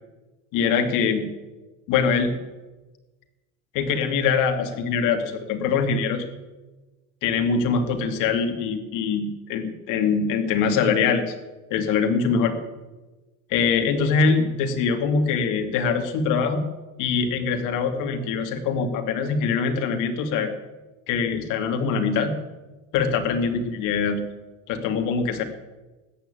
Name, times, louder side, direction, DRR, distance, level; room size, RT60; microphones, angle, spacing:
voice 1, 0.5-1.3 1.9-2.3 3.7-6.2 7.2-11.3 11.7-12.5 13.5-16.6 17.0-20.5 21.1-22.3 22.9-24.2 24.7-25.4, left 5 dB, 60° left, 5 dB, 2.5 m, -23 dB
14.0 x 9.3 x 9.2 m, 1.2 s
cardioid pair, 150°, 36 cm